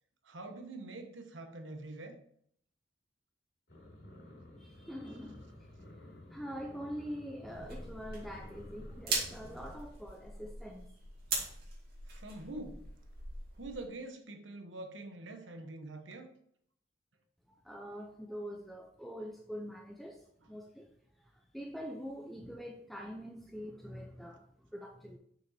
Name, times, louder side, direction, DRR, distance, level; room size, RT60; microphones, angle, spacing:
voice 1, 0.2-2.2 12.1-12.9 13.6-16.3, right 2 dB, 85° right, 5 dB, 1.1 m, -45 dB
sound 1, 3.7-9.7, left 1 dB, 60° left, 3.0 m, -53 dB
voice 2, 4.6-5.7 6.3-10.9 17.5-20.9 21.2-25.2, equal, ahead, 2 dB, 0.5 m, -44 dB
sound 2, 7.5-13.9, right 3 dB, 55° right, 2.4 m, -41 dB
6.0 x 5.7 x 4.2 m, 0.66 s
head